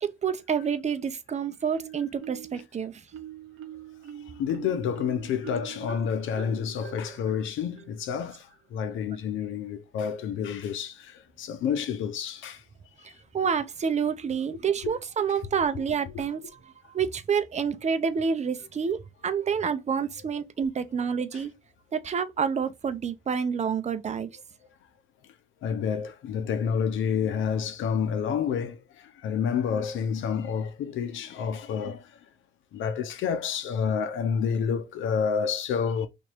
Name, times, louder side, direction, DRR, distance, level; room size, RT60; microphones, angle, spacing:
voice 1, 0.0-3.0 13.0-21.5 21.9-24.3, right 6 dB, 35° right, 0.6 m, -28 dB
Marimba xylophone, 1.7-2.7 3.1-8.6, right 10 dB, 80° right, 0.7 m, -44 dB
voice 2, 4.4-12.6 13.1-13.2 14.8-14.9 16.1-16.3 21.3-21.4 25.6-32.2 32.7-36.1, left 7 dB, 75° left, 0.7 m, -29 dB
3.0 x 2.6 x 4.4 m
cardioid pair, 90°, 20 cm